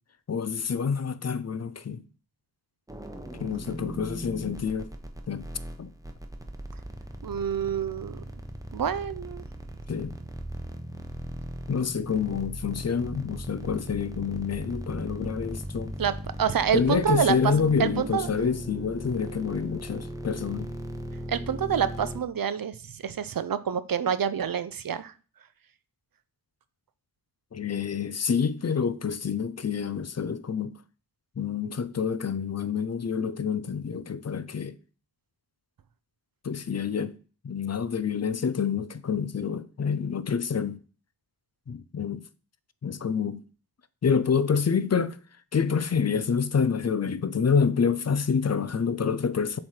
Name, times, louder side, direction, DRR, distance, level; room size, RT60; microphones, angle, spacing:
voice 1, 0.3-2.0 3.4-4.9 5.3-5.5 5.8-5.9 9.9-10.2 11.7-16.0 16.7-20.7 27.5-30.8 31.4-34.7 36.4-37.1 37.4-40.8 41.7-42.2 42.8-43.4 44.0-45.2 45.5-49.6, left 6 dB, 40° left, 0.5 m, -27 dB
sound 1, 2.9-22.2, right 1 dB, 10° right, 0.9 m, -38 dB
voice 2, 7.2-8.2 8.7-9.4 16.0-16.1 16.4-17.4 17.8-18.3 21.3-25.1, right 8 dB, 60° right, 0.6 m, -27 dB
7.2 x 3.3 x 4.4 m
cardioid pair, 45°, 40 cm